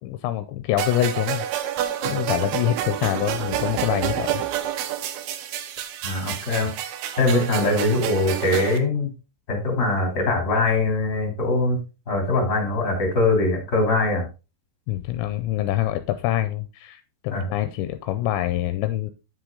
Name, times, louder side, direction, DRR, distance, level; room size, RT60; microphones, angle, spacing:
voice 1, 0.0-1.7 2.0-4.4 14.9-19.1, left 13 dB, 80° left, 2.8 m, -25 dB
sound 1, 0.8-8.8, right 10 dB, 75° right, 2.5 m, -28 dB
voice 2, 6.0-6.7 7.2-9.1 9.5-11.8 12.1-14.3 17.3-17.5, left 2 dB, 25° left, 2.9 m, -22 dB
9.9 x 6.1 x 3.8 m
omnidirectional pair, 5.4 m